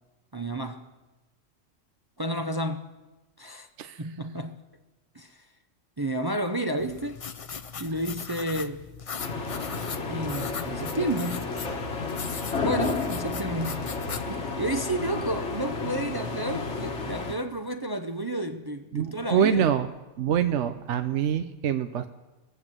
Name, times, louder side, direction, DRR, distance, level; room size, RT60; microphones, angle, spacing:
voice 1, 0.3-0.9 2.2-2.9 3.4-3.7 4.0-4.6 5.1-5.5 6.0-7.2 7.8-8.9 10.1-11.5 12.6-14.0 14.3-19.6, right 1 dB, 25° right, 0.5 m, -31 dB
sound 1, 6.8-14.3, left 6 dB, 45° left, 0.4 m, -39 dB
sound 2, 9.2-17.4, left 4 dB, 65° left, 1.7 m, -32 dB
voice 2, 18.9-19.9 20.2-22.1, right 8 dB, 70° right, 1.0 m, -25 dB
21.0 x 7.9 x 7.5 m
omnidirectional pair, 1.3 m